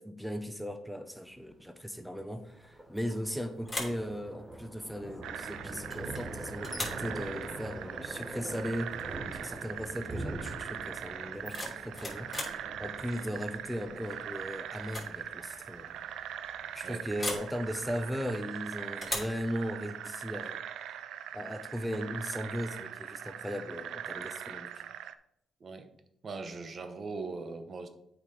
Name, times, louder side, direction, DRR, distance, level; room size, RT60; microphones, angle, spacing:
voice 1, 0.0-12.3 12.8-15.9 16.7-20.6 21.3-24.7, equal, ahead, 8 dB, 0.7 m, -37 dB
Thunder, 1.2-18.1, right 1 dB, 15° right, 2.4 m, -45 dB
sound 1, 3.0-3.3 3.6-4.1 5.9-6.3 6.6-7.1 8.9-9.1 9.4-9.8 11.2-12.6 14.1-14.4 14.8-15.1 15.4-15.5 17.2-17.5 19.0-19.4, left 2 dB, 20° left, 2.9 m, -38 dB
sound 2, 5.2-25.2, right 9 dB, 80° right, 0.5 m, -41 dB
voice 2, 26.2-27.9, right 3 dB, 45° right, 8 dB, 1.1 m, -40 dB
8.1 x 5.0 x 5.2 m, 0.76 s
cardioid pair, 80°, 0 cm